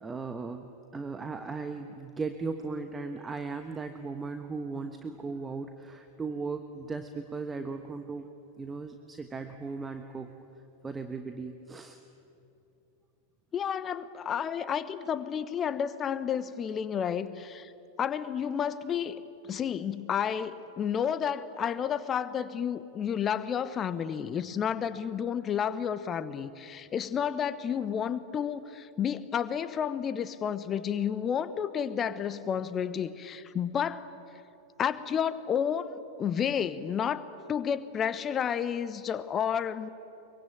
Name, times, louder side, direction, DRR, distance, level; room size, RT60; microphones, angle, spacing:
voice 1, 0.0-10.3 10.8-12.0, right 4 dB, 15° right, 7 dB, 1.3 m, -37 dB
voice 2, 13.5-17.7 18.0-34.1 34.8-35.9 36.2-39.9, left 8 dB, 25° left, 14 dB, 1.1 m, -31 dB
23.5 x 23.0 x 9.1 m, 2.8 s
figure-of-eight pair, 90°, 0 cm